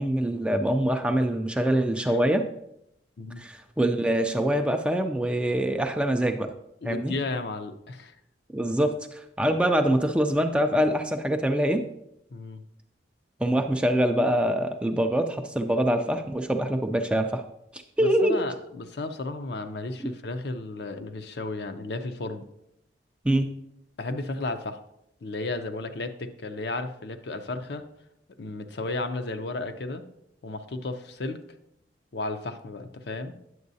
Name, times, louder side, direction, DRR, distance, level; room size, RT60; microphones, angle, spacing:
voice 1, 0.0-2.5 3.4-6.5 6.8-7.1 8.5-11.8 13.4-17.4 17.7-18.4 20.0-20.1 23.2-23.5, right 1 dB, 5° right, 6 dB, 0.3 m, -24 dB
voice 2, 6.8-8.1 12.3-12.6 18.0-22.4 24.0-24.8 25.2-27.8 28.4-30.0 30.4-31.4 32.1-33.3, left 2 dB, 60° left, 8 dB, 0.5 m, -33 dB
9.4 x 6.9 x 2.7 m, 0.80 s
head